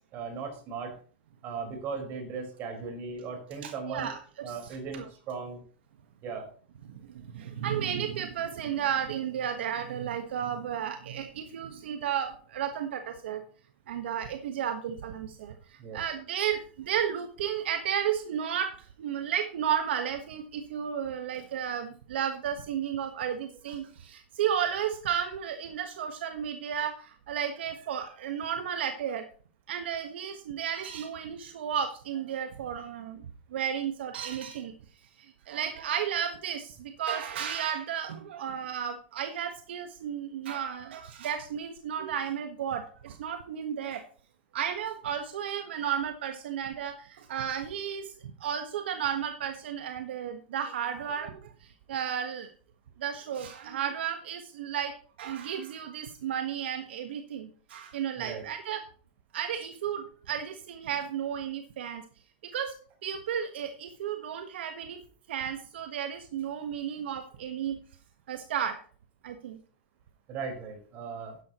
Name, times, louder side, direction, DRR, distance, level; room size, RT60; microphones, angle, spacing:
voice 1, 0.1-0.9 1.4-4.1 4.4-5.6 6.2-6.5 15.8-16.0 58.2-58.4 70.3-71.4, right 5 dB, 40° right, 3 dB, 4.7 m, -37 dB
voice 2, 3.6-4.2 4.5-5.1 6.9-13.4 13.9-29.2 29.7-33.2 33.5-34.7 35.2-44.0 44.5-48.1 48.4-52.5 53.0-58.8 59.3-62.0 62.4-62.7 63.0-65.0 65.3-67.8 68.3-68.8 69.2-69.6, right 9 dB, 80° right, 7 dB, 1.4 m, -33 dB
12.0 x 10.5 x 3.0 m, 0.43 s
supercardioid pair, 140°, 6 cm